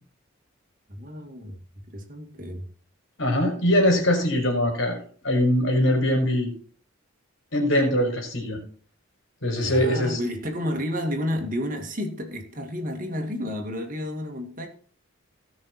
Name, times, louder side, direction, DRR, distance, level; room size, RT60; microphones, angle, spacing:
voice 1, 0.9-1.6 1.9-2.7 9.6-14.7, left 1 dB, 40° right, 2.2 m, -31 dB
voice 2, 3.2-5.0 5.2-6.5 7.5-8.6 9.4-10.2, left 1 dB, 65° left, 4.8 m, -22 dB
18.0 x 6.3 x 4.4 m
head